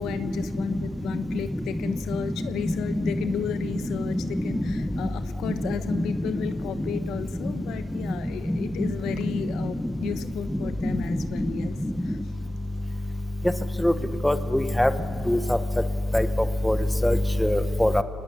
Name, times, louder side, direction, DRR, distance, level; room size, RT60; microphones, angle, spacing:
voice 1, 0.0-11.7 12.0-12.2, left 9 dB, 85° left, 10 dB, 1.1 m, -34 dB
voice 2, 14.2-14.9 15.3-15.4 16.1-16.2 16.6-16.8 17.0-18.0, left 1 dB, 5° left, 10 dB, 1.2 m, -21 dB
24.0 x 19.5 x 8.4 m, 2.5 s
cardioid pair, 90°, 0 cm